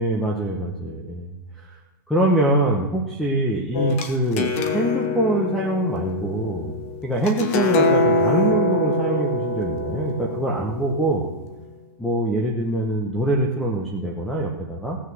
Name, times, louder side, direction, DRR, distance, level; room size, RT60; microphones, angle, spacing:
voice 1, 0.0-1.8 2.1-6.8 7.0-11.3 12.0-15.0, right 1 dB, ahead, -1 dB, 1.0 m, -24 dB
sound 1, 3.7-11.5, left 2 dB, 40° left, 1.5 m, -24 dB
17.0 x 6.5 x 7.8 m, 1.1 s
supercardioid pair, 170°, 12 cm